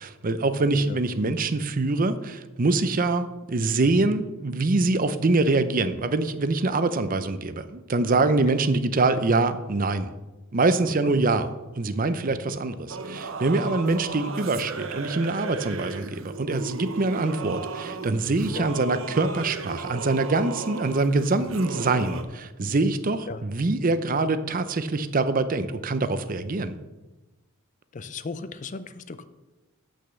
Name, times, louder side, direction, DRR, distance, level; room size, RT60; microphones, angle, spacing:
voice 1, 0.0-10.1 10.5-11.5 11.8-26.7, right 3 dB, 40° right, 12 dB, 0.6 m, -24 dB
Singing / Musical instrument, 12.9-22.2, right 4 dB, 70° right, 0.9 m, -35 dB
voice 2, 27.9-29.2, left 4 dB, 35° left, 13 dB, 0.5 m, -36 dB
8.2 x 6.3 x 6.8 m, 1.1 s
head